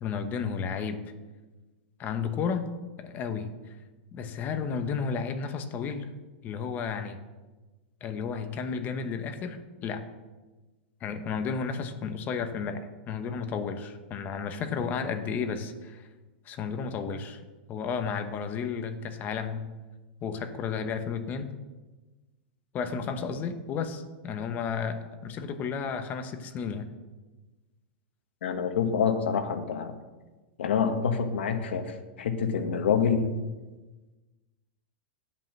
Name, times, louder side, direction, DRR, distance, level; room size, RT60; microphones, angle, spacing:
voice 1, 0.0-1.0 2.0-2.7 3.0-3.5 4.1-6.1 6.4-7.2 8.0-10.0 11.0-16.1 16.4-17.4 17.7-19.7 20.2-21.5 22.7-26.9, left 6 dB, 30° left, 8 dB, 1.1 m, -32 dB
voice 2, 28.4-29.9 30.6-33.3, left 6 dB, 90° left, 7 dB, 1.3 m, -27 dB
10.5 x 5.6 x 7.4 m, 1.2 s
supercardioid pair, 140°, 6 cm